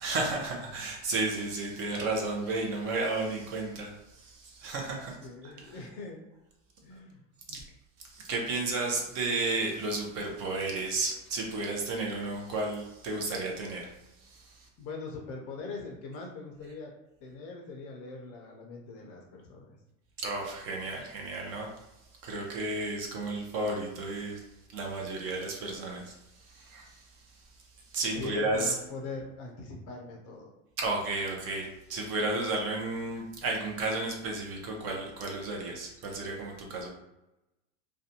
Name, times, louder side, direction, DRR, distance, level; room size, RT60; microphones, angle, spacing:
voice 1, 0.0-3.9 4.2-5.2 7.5-7.6 8.1-13.8 14.3-14.4 20.2-21.7 22.2-24.4 24.7-26.1 26.5-26.9 27.9-28.7 30.8-36.9, right 2 dB, 40° right, 0 dB, 0.6 m, -32 dB
voice 2, 5.0-6.2 6.8-7.2 7.5-7.6 14.8-16.9 17.2-19.8 28.1-30.5, left 3 dB, 40° left, 0 dB, 0.5 m, -42 dB
2.5 x 2.2 x 2.7 m, 0.93 s
supercardioid pair, 150°, 38 cm